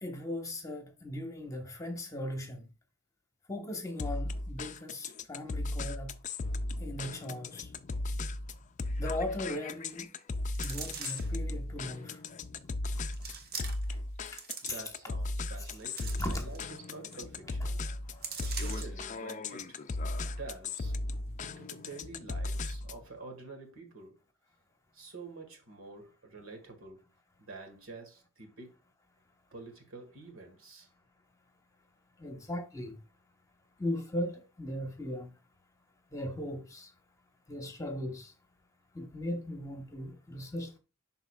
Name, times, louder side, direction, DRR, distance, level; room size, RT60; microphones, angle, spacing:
voice 1, 0.0-2.7 3.5-6.1 6.8-7.7 9.0-10.1 10.6-12.2 14.7-14.8 15.7-15.8 16.2-16.5 32.2-33.0 33.8-35.3 36.1-36.9 37.5-38.3 38.9-40.8, left 1 dB, 15° left, 1.2 m, -38 dB
sound 1, 4.0-23.1, left 2 dB, 35° left, 0.4 m, -36 dB
sound 2, 10.5-11.4 12.2-12.3 13.1-14.0 14.3-15.1 15.6-16.8 17.1-17.2 17.5-17.7 18.2-19.0 19.5-19.6, right 6 dB, 50° right, 1.1 m, -42 dB
voice 2, 14.6-17.8 18.4-19.8 20.2-21.0 21.4-24.2 24.9-27.0 27.4-28.7 29.5-30.9, right 3 dB, 75° right, 1.8 m, -48 dB
11.0 x 4.0 x 2.4 m
head